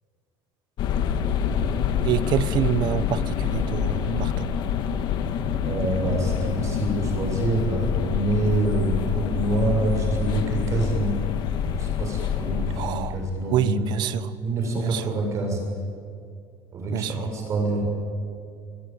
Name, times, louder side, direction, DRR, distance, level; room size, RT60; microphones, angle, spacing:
sound 1, 0.8-13.4, left 8 dB, 50° left, 1.6 m, -26 dB
voice 1, 2.0-4.5 12.8-13.2 13.5-14.3 14.8-15.0 16.9-17.1, right 11 dB, 50° right, 14 dB, 1.2 m, -26 dB
voice 2, 5.3-11.1 11.7-13.8 14.4-15.6 16.7-17.8, right 2 dB, 30° right, 1 dB, 7.1 m, -26 dB
25.0 x 21.0 x 9.3 m, 2.3 s
cardioid pair, 170°, 10 cm